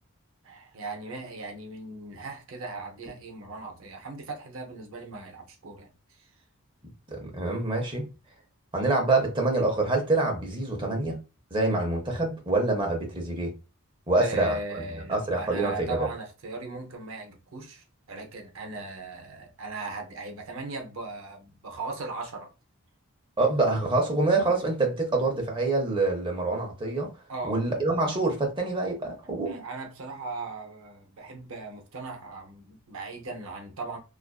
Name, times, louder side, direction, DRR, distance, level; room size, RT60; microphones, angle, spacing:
voice 1, 0.4-5.9 6.2-6.3 14.2-22.5 27.3-27.6 29.5-34.0, right 3 dB, 65° right, 0.7 m, -38 dB
voice 2, 7.1-8.1 8.7-11.2 11.5-13.5 14.1-16.0 23.4-27.1 27.4-29.6, right 2 dB, 25° right, 0.7 m, -26 dB
2.4 x 2.4 x 2.3 m
head